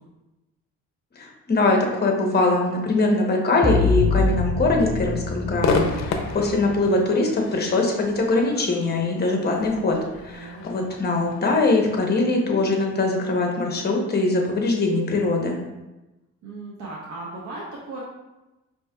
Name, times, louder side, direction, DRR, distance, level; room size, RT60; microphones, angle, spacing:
voice 1, 1.2-10.0 10.2-15.6, left 2 dB, 35° left, 0 dB, 0.9 m, -22 dB
sound 1, 3.6-6.7, left 2 dB, 15° left, 0.4 m, -25 dB
Crowd / Fireworks, 5.6-12.9, left 4 dB, 65° left, 0.6 m, -31 dB
voice 2, 10.3-10.7 16.4-18.0, right 2 dB, 75° right, -4 dB, 0.8 m, -37 dB
5.2 x 2.8 x 2.3 m, 1.0 s
cardioid pair, 90°, 30 cm